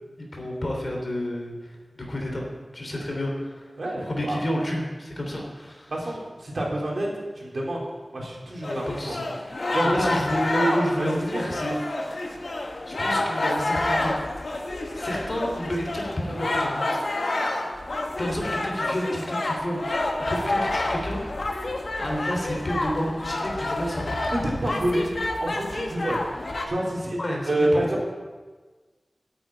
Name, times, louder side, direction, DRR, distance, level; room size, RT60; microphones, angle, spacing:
voice 1, 0.2-2.4 2.7-3.7 4.0-5.9 8.7-9.3 9.8-11.8 12.1-12.4 12.9-14.1 14.9-16.9 18.2-20.0 20.3-21.2 22.0-24.2 27.2-27.9, equal, 50° left, 0 dB, 3.2 m, -30 dB
voice 2, 3.8-4.4 5.9-7.8 8.1-9.2 9.7-10.1 11.0-11.4 24.4-25.1 25.4-26.2 26.7-27.9, right 1 dB, 65° right, -2 dB, 3.4 m, -27 dB
sound 1, 8.6-26.7, left 2 dB, 65° left, 1.5 m, -28 dB
9.2 x 8.7 x 8.7 m, 1.4 s
wide cardioid pair, 75°, 0 cm